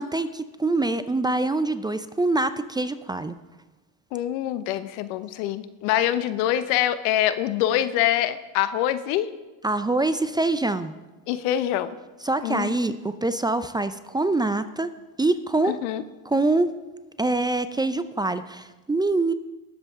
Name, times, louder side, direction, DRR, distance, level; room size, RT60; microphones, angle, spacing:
voice 1, 0.0-3.4 9.6-10.9 12.2-14.9 15.2-15.8 16.2-16.7 17.2-19.3, right 2 dB, 10° right, 11 dB, 0.4 m, -24 dB
voice 2, 4.1-9.3 11.3-11.9 12.4-12.9 15.7-16.0, left 12 dB, 80° left, 13 dB, 0.9 m, -25 dB
19.0 x 7.6 x 3.7 m, 1.2 s
supercardioid pair, 95°, 41 cm